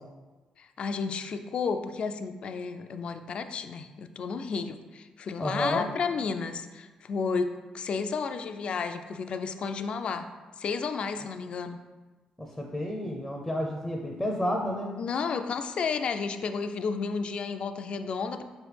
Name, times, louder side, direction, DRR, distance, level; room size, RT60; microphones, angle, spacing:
voice 1, 0.6-10.3 10.6-11.8 15.0-18.4, left 5 dB, 55° left, 8 dB, 0.3 m, -32 dB
voice 2, 5.4-5.9 12.4-15.0, equal, 10° left, 0 dB, 0.5 m, -31 dB
4.5 x 3.1 x 3.3 m, 1.2 s
cardioid pair, 75°, 2 cm